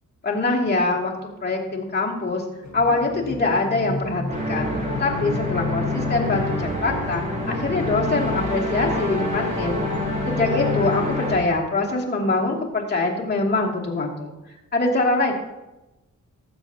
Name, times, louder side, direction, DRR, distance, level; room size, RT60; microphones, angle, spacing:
voice 1, 0.2-1.1 1.4-2.4 2.7-4.7 5.0-9.8 10.3-14.3 14.7-15.3, left 3 dB, 30° left, -3 dB, 2.5 m, -23 dB
sound 1, 2.6-11.6, left 3 dB, 60° left, 1.3 m, -36 dB
sound 2, 4.3-11.3, left 2 dB, 25° right, 4.2 m, -26 dB
19.0 x 7.5 x 2.8 m, 1.0 s
wide cardioid pair, 115°, 31 cm